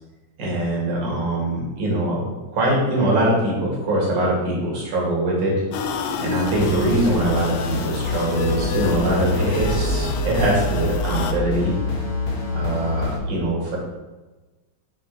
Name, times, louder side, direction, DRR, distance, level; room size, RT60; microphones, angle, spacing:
voice 1, 0.4-2.2 2.5-5.6 6.2-11.7 12.5-13.8, right 1 dB, 60° right, -4 dB, 2.7 m, -22 dB
sound 1, 5.7-11.3, left 4 dB, 80° left, 1.5 m, -29 dB
sound 2, 6.5-13.2, left 1 dB, 55° left, 1.8 m, -26 dB
7.0 x 4.1 x 3.8 m, 1.2 s
omnidirectional pair, 3.4 m